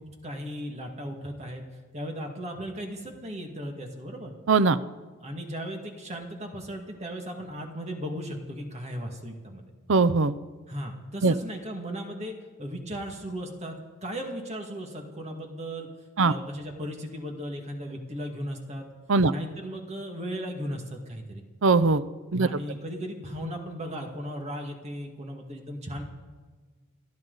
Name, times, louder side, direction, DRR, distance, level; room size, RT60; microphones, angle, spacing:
voice 1, 0.0-1.6 1.9-4.4 5.2-9.6 10.7-15.9 16.2-18.9 19.3-21.4 22.4-26.0, equal, 30° right, 3 dB, 2.0 m, -36 dB
voice 2, 4.5-4.8 9.9-10.3 11.2-11.3 16.2-16.3 19.1-19.3 21.6-22.0 22.3-22.5, right 3 dB, 65° right, 13 dB, 0.6 m, -20 dB
28.5 x 10.5 x 4.0 m, 1.4 s
head